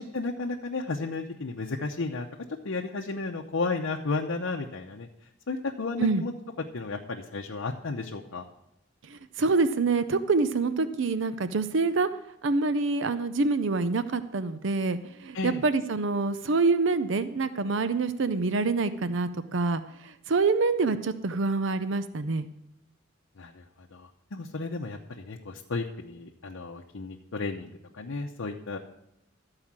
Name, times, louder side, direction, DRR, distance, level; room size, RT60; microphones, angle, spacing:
voice 1, 0.0-2.3 2.6-5.1 5.5-6.3 6.7-8.4 15.3-15.6 23.4-23.6 23.9-28.8, left 3 dB, 80° left, 2 dB, 0.8 m, -33 dB
voice 2, 9.1-12.1 12.4-22.5, right 3 dB, 65° right, 12 dB, 0.5 m, -26 dB
13.0 x 4.8 x 7.4 m, 0.84 s
head